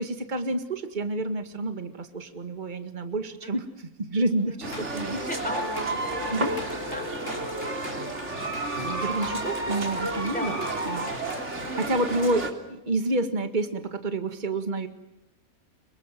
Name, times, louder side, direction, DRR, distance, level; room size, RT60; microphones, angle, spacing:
voice 1, 0.0-3.7 4.0-5.2 6.3-6.5 8.8-10.6 10.9-11.1 11.8-14.9, right 2 dB, 35° right, 8 dB, 2.0 m, -29 dB
Drum kit / Drum, 4.4-11.8, left 1 dB, 60° left, 5.3 m, -44 dB
voice 2, 4.5-8.0 10.3-10.6 11.3-12.2, left 1 dB, 5° left, 3 dB, 4.8 m, -40 dB
sound 1, 4.6-12.5, right 2 dB, 55° right, 3.6 m, -31 dB
26.5 x 24.5 x 7.8 m, 0.93 s
omnidirectional pair, 1.5 m